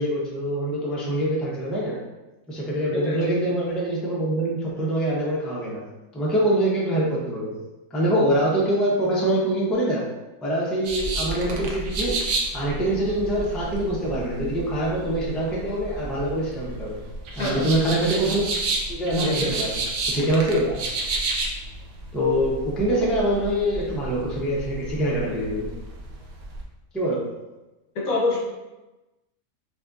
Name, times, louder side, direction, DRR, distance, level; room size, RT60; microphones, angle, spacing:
voice 1, 0.0-2.0 2.5-5.8 6.1-7.6 7.9-10.1 10.4-12.2 12.5-17.0 17.3-18.4 18.9-19.8 20.1-20.7 22.1-25.7 26.9-27.3, right 1 dB, ahead, -5 dB, 0.6 m, -24 dB
sound 1, 10.8-26.6, right 2 dB, 90° right, 1.2 m, -31 dB
voice 2, 27.9-28.4, left 2 dB, 85° left, -4 dB, 1.5 m, -26 dB
5.7 x 2.5 x 2.6 m, 1.0 s
omnidirectional pair, 1.5 m